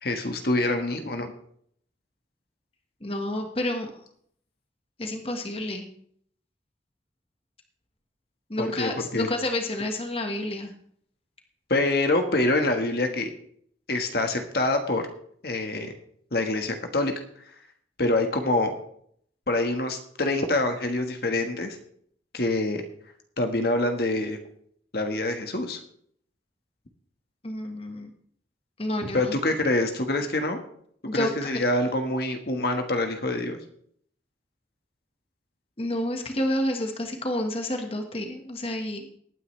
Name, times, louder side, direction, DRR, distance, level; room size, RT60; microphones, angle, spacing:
voice 1, 0.0-1.3 8.6-9.3 11.7-13.3 13.9-15.0 15.4-15.9 16.3-17.1 18.0-18.7 19.5-21.8 22.3-22.8 23.4-24.4 24.9-25.8 29.1-30.6 31.1-33.6, left 2 dB, 55° left, 5 dB, 1.5 m, -25 dB
voice 2, 3.0-3.9 5.0-5.9 8.5-10.7 27.4-28.1 28.8-29.3 31.0-31.5 35.8-39.2, left 1 dB, 30° left, 4 dB, 1.5 m, -29 dB
19.5 x 9.5 x 3.3 m, 0.63 s
head